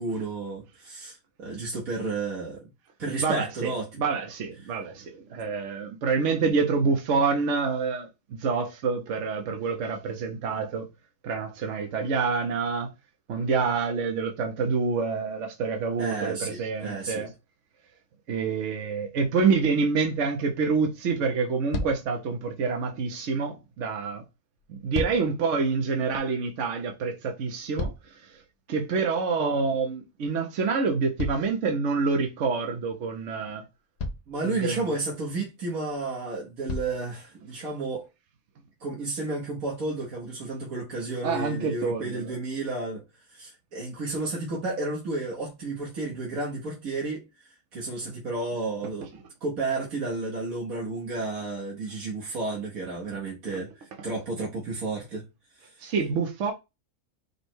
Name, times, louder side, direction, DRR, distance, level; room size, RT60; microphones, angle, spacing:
voice 1, 0.0-2.6 3.0-3.9 16.0-17.3 34.3-38.1 38.8-43.0 43.3-47.2 47.7-49.1 49.4-55.2 55.6-55.7, right 3 dB, 85° right, 1.7 m, -32 dB
voice 2, 3.2-10.9 11.2-12.9 13.3-17.3 18.3-24.2 24.7-28.4 28.7-33.6 34.4-34.9 41.2-42.3 48.0-48.1 53.5-53.6 55.8-56.5, right 4 dB, 65° right, 1.0 m, -27 dB
sound 1, 21.7-22.2 24.6-25.4 27.3-28.4 31.2-32.2 33.3-33.4 34.0-34.4 35.9-36.0 36.7-37.1 37.9-38.0, left 2 dB, 55° left, 1.0 m, -34 dB
5.3 x 2.2 x 4.4 m
omnidirectional pair, 1.4 m